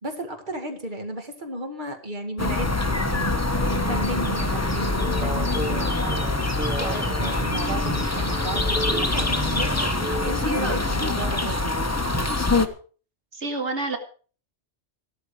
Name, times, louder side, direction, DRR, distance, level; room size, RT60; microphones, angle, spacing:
voice 1, 0.0-9.7 10.0-11.7, right 1 dB, 45° right, 5 dB, 2.3 m, -34 dB
sound 1, 2.4-12.7, left 2 dB, 15° left, 1.2 m, -24 dB
sound 2, 3.7-10.4, right 1 dB, 10° right, 0.5 m, -35 dB
voice 2, 13.3-14.0, right 3 dB, 85° right, 5 dB, 2.2 m, -28 dB
15.0 x 13.0 x 4.9 m, 0.40 s
omnidirectional pair, 1.2 m